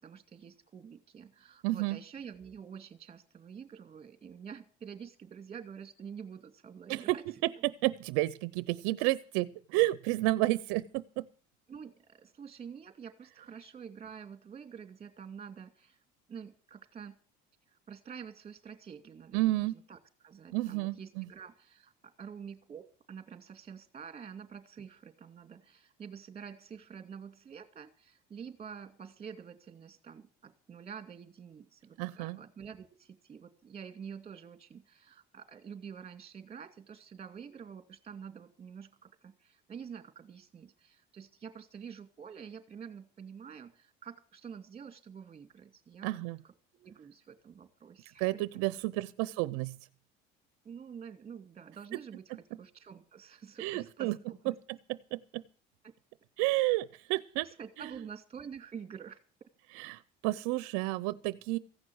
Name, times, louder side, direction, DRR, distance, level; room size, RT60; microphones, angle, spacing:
voice 1, 0.0-7.2 11.7-16.0 16.3-17.1 17.9-46.2 46.4-48.2 50.6-54.6 55.8-55.9 57.4-59.2, right 7 dB, 30° right, 8 dB, 2.6 m, -48 dB
voice 2, 1.6-2.0 6.9-7.2 7.4-11.3 19.3-19.7 20.5-21.3 32.0-32.4 46.0-46.4 48.2-49.8 53.6-54.1 54.9-55.4 56.4-57.5 57.8-57.9 59.7-61.6, right 19 dB, 80° right, 16 dB, 0.7 m, -31 dB
15.5 x 6.1 x 9.4 m, 0.41 s
supercardioid pair, 95°, 21 cm